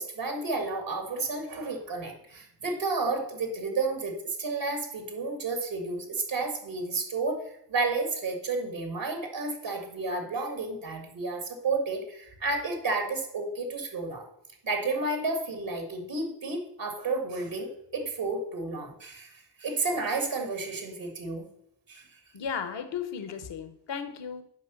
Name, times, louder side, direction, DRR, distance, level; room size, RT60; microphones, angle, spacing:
voice 1, 0.0-14.3 14.6-21.5 21.9-22.2, right 3 dB, 90° right, 4 dB, 2.1 m, -31 dB
voice 2, 22.3-24.4, left 7 dB, 75° left, 9 dB, 1.0 m, -35 dB
8.2 x 5.1 x 7.0 m, 0.75 s
cardioid pair, 45°, 43 cm